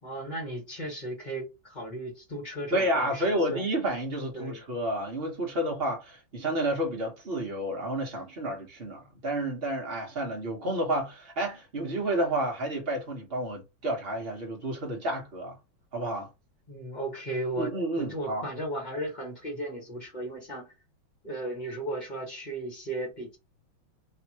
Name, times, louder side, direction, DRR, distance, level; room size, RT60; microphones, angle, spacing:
voice 1, 0.0-3.7 4.3-4.6 16.7-20.7 21.2-23.4, right 1 dB, 25° left, 1.8 m, -36 dB
voice 2, 2.7-15.6 15.9-16.3 17.5-18.5, right 1 dB, 35° right, 1.2 m, -30 dB
3.5 x 2.9 x 3.0 m
omnidirectional pair, 2.2 m